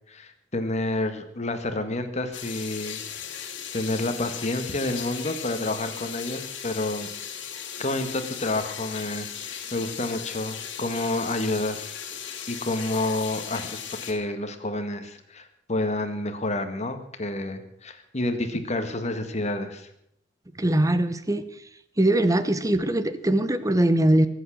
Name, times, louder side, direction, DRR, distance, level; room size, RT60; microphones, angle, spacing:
voice 1, 0.1-7.1 7.8-12.0 12.5-19.9, left 2 dB, 40° left, 8 dB, 1.7 m, -29 dB
sound 1, 2.3-14.1, left 8 dB, 70° left, 2.4 m, -37 dB
voice 2, 20.6-21.4 22.0-24.3, right 1 dB, 20° right, 12 dB, 1.0 m, -21 dB
23.5 x 8.3 x 6.4 m, 0.73 s
head